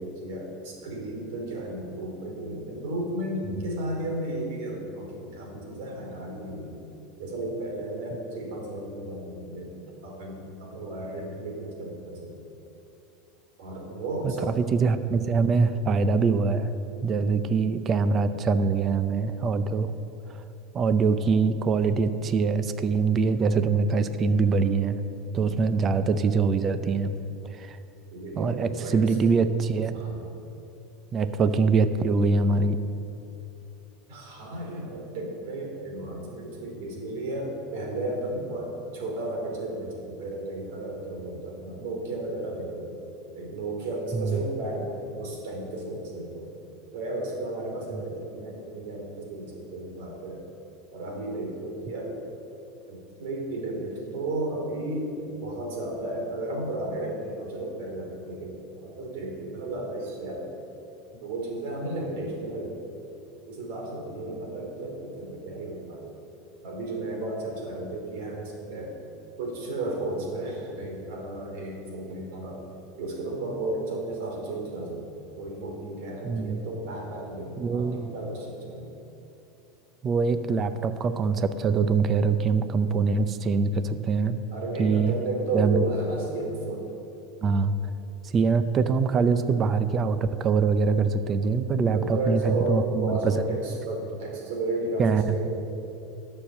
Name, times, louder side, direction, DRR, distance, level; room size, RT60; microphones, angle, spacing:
voice 1, 0.0-6.8 7.2-9.7 10.0-12.3 13.6-14.6 25.4-25.6 28.1-29.1 29.9-30.3 34.1-42.9 43.3-46.5 46.9-50.4 50.9-52.2 52.9-60.5 61.2-62.8 63.5-66.1 66.6-68.9 69.4-72.6 73.0-78.9 84.5-86.9 91.7-95.5, right 2 dB, 75° right, 1 dB, 3.0 m, -33 dB
voice 2, 14.2-16.7 17.0-19.9 20.3-20.4 20.7-25.0 25.3-27.1 27.5-27.8 28.4-30.0 31.1-32.8 44.1-44.4 76.2-76.6 77.6-78.1 80.0-84.4 84.8-85.2 85.5-85.8 87.4-87.8 88.2-93.4 95.0-95.3, right 4 dB, 30° right, 12 dB, 0.5 m, -24 dB
11.5 x 6.6 x 7.5 m, 2.9 s
supercardioid pair, 145°, 0 cm